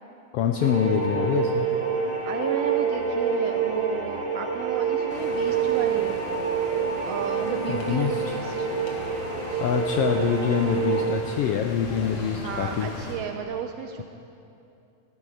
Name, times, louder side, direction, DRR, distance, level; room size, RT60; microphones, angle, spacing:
voice 1, 0.3-1.7 7.7-8.4 9.6-12.9, left 8 dB, 80° left, 4 dB, 1.4 m, -25 dB
sound 1, 0.6-11.1, right 6 dB, 60° right, 4.1 m, -27 dB
voice 2, 2.3-6.2 7.0-8.7 12.2-14.0, right 7 dB, 75° right, 6 dB, 1.5 m, -33 dB
sound 2, 5.1-13.1, left 1 dB, 55° left, 2.6 m, -39 dB
16.0 x 12.5 x 4.9 m, 2.7 s
omnidirectional pair, 3.3 m